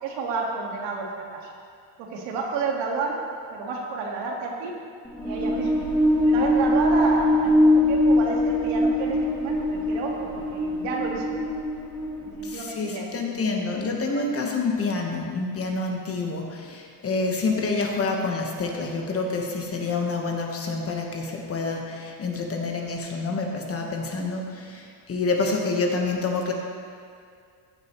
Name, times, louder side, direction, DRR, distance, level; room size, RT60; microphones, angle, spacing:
voice 1, 0.0-1.5 2.0-3.1 3.5-4.7 5.2-5.8 6.2-11.2 12.2-13.1, right 4 dB, 75° right, -1 dB, 1.9 m, -30 dB
sound 1, 5.1-12.7, left 1 dB, 10° left, 1.5 m, -22 dB
voice 2, 12.4-26.5, left 3 dB, 30° left, 1 dB, 1.2 m, -27 dB
15.0 x 7.6 x 3.1 m, 2.3 s
cardioid pair, 130°, 46 cm